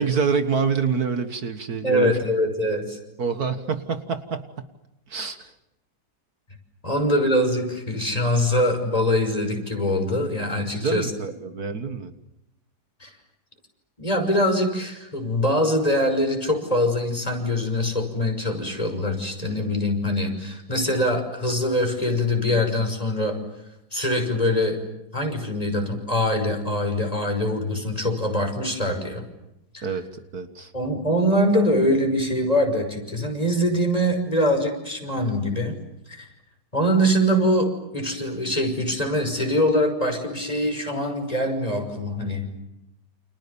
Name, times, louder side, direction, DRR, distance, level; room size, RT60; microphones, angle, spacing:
voice 1, 0.0-2.3 3.2-4.7 5.1-5.5 10.7-12.1 29.8-30.7, right 5 dB, 65° right, 9 dB, 2.1 m, -27 dB
voice 2, 1.8-3.0 6.8-11.1 13.0-13.1 14.0-23.4 23.9-24.8 25.1-29.2 29.7-29.8 30.7-35.8 36.1-36.3 36.7-42.5, left 1 dB, 20° left, 4 dB, 6.3 m, -23 dB
29.5 x 28.5 x 7.1 m, 0.88 s
omnidirectional pair, 1.8 m